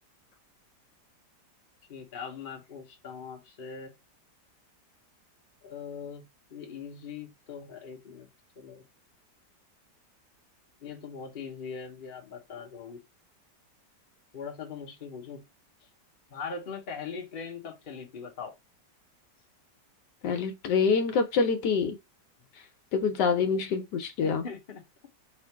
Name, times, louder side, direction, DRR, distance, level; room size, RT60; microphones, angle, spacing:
voice 1, 1.9-3.9 5.6-6.2 6.5-8.3 8.6-8.8 10.8-13.0 14.3-15.4 16.3-18.5 24.2-24.8, left 6 dB, 40° left, 0.8 m, -41 dB
voice 2, 20.2-22.0 22.9-24.4, left 5 dB, 75° left, 1.3 m, -26 dB
3.6 x 2.5 x 4.4 m
omnidirectional pair, 1.9 m